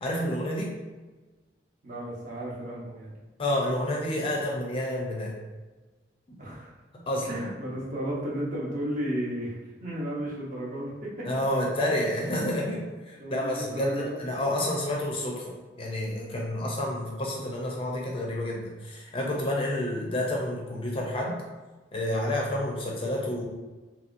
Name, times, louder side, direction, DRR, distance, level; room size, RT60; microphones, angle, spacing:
voice 1, 0.0-0.7 3.4-5.3 7.1-7.4 11.3-15.4 15.8-21.4 21.9-23.4, left 1 dB, 30° left, -2 dB, 0.4 m, -29 dB
voice 2, 1.8-3.1 6.4-6.7 7.3-11.3 12.6-12.7 13.2-14.1, equal, 45° right, -6 dB, 0.8 m, -33 dB
2.9 x 2.7 x 2.5 m, 1.2 s
head